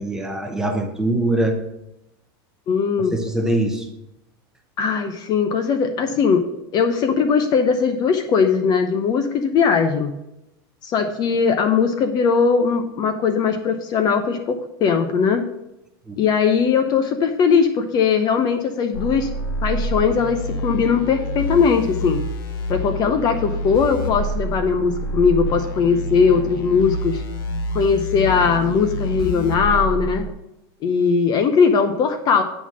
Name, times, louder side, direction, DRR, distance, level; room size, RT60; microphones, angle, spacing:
voice 1, 0.0-1.6 3.1-3.9 16.1-16.2, right 1 dB, 5° right, 3 dB, 0.9 m, -22 dB
voice 2, 2.7-3.1 4.8-6.5 6.7-10.1 10.8-15.4 16.2-19.3 19.6-22.2 22.7-27.2 27.7-30.3 30.8-32.4, left 6 dB, 35° left, 7 dB, 0.7 m, -19 dB
sound 1, 18.9-30.3, equal, 65° left, 1.2 m, -27 dB
9.0 x 4.2 x 6.1 m, 0.86 s
supercardioid pair, 145°, 12 cm